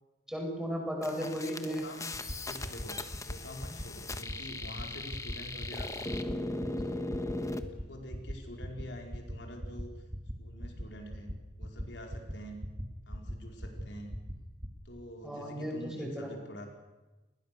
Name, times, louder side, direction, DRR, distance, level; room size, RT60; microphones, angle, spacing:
voice 1, 0.3-1.9 15.2-16.4, equal, 5° right, 1 dB, 6.4 m, -35 dB
sound 1, 1.0-7.6, left 2 dB, 20° left, 1.4 m, -38 dB
voice 2, 1.4-2.1 2.4-6.3 6.8-7.1 7.7-9.9 10.4-11.3 11.6-12.6 13.1-14.1 14.8-16.7, equal, 80° left, 2 dB, 4.6 m, -46 dB
sound 2, 2.1-2.3 2.6-2.9 3.1-3.4 3.6-3.8 4.1-4.3 4.6-4.8 5.1-5.3 5.6-5.8 6.1-6.3 6.6-6.8 7.1-7.3 7.6-7.8 8.1-8.3 8.6-8.8 9.1-9.3 9.6-9.8 10.1-10.3 10.6-10.8 11.1-11.3 11.6-11.8 12.1-12.3 12.6-12.8 13.1-13.3 13.6-13.8 14.1-14.3 14.6-14.8, equal, 35° right, 2.4 m, -38 dB
29.5 x 21.0 x 6.8 m, 1.1 s
head